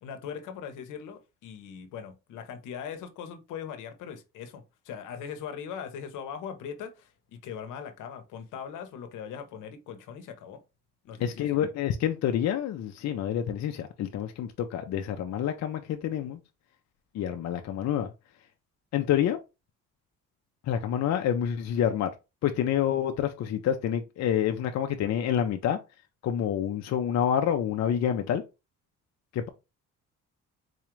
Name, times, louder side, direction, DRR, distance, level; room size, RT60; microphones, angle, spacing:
voice 1, 0.0-10.6 11.0-11.6, left 7 dB, 85° left, 0.8 m, -40 dB
voice 2, 11.2-16.4 17.1-18.1 18.9-19.4 20.7-22.1 22.4-25.8 26.2-28.4 29.3-29.5, left 9 dB, 60° left, 0.5 m, -28 dB
4.1 x 2.3 x 3.0 m
cardioid pair, 90°, 30 cm